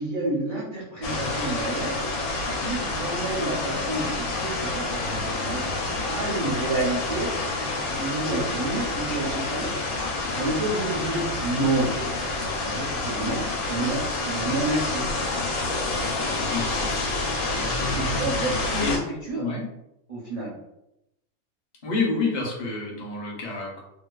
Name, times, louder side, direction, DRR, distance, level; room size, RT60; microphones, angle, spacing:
voice 1, 0.0-1.9 2.5-5.6 6.1-7.3 8.0-9.7 10.4-11.9 12.6-15.0 17.9-19.0 19.3-19.4 20.1-20.5, right 2 dB, 45° right, -8 dB, 0.5 m, -29 dB
sound 1, 1.0-19.0, left 2 dB, 80° left, 1.0 m, -28 dB
voice 2, 16.5-17.1 17.9-18.2 18.8-19.0 19.3-19.7 21.8-23.8, left 3 dB, 45° left, -2 dB, 0.6 m, -29 dB
2.7 x 2.2 x 2.3 m, 0.86 s
omnidirectional pair, 1.5 m